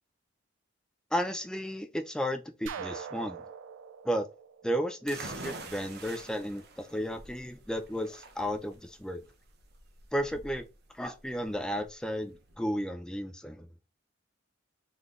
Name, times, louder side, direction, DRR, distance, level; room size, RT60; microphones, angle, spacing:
voice 1, 1.1-3.4 4.0-4.3 4.6-9.2 10.1-10.6 10.9-13.7, equal, 5° left, 0.4 m, -33 dB
sound 1, 2.7-5.5, right 6 dB, 75° right, 0.3 m, -43 dB
sound 2, 5.1-12.5, right 3 dB, 55° right, 0.7 m, -46 dB
3.9 x 3.3 x 2.4 m
head